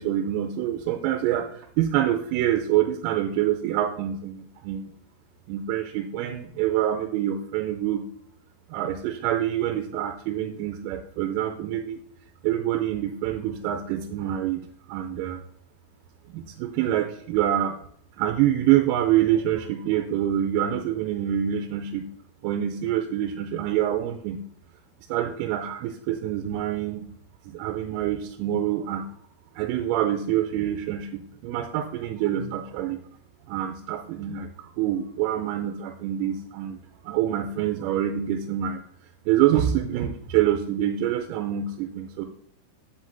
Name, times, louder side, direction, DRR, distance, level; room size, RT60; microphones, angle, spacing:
voice 1, 0.0-4.9 5.5-8.0 8.7-12.0 12.4-15.4 16.3-17.8 18.2-22.1 22.4-24.4 25.1-27.1 27.5-29.0 29.6-33.0 33.5-36.8 37.0-38.8 39.3-42.3, right 11 dB, 90° right, 6 dB, 3.4 m, -26 dB
13.5 x 7.3 x 2.6 m, 0.66 s
omnidirectional pair, 6.0 m